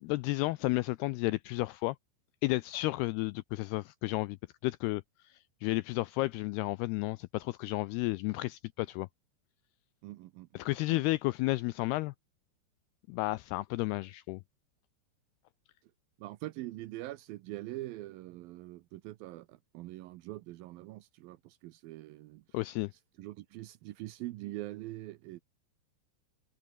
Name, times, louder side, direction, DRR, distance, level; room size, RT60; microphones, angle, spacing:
voice 1, 0.0-2.0 2.4-4.4 4.6-9.1 10.5-12.1 13.1-14.4 22.5-22.9, left 20 dB, 85° left, 2.3 m, -32 dB
voice 2, 10.0-10.5 10.9-11.0 15.8-15.9 16.2-22.6 23.2-25.4, right 17 dB, 85° right, 2.1 m, -43 dB
open air
omnidirectional pair, 5.2 m